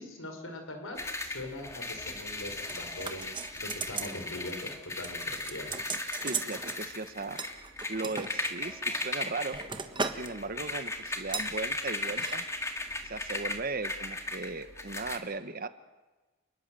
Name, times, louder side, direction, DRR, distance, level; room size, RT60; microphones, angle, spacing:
voice 1, 0.0-5.8, left 1 dB, 70° left, 5 dB, 5.2 m, -42 dB
sound 1, 1.0-15.2, left 2 dB, 15° left, 2.0 m, -37 dB
sound 2, 2.7-4.2 4.5-4.7 5.0-6.8 7.4-8.3 8.9-10.3 10.6-10.8 11.3-11.5 12.1-12.4 12.6-12.7, right 4 dB, 25° right, 1.5 m, -37 dB
voice 2, 6.2-7.4 7.9-9.6 10.1-12.4 13.0-15.7, right 3 dB, 45° right, 11 dB, 1.3 m, -37 dB
29.0 x 20.5 x 7.7 m, 1.2 s
head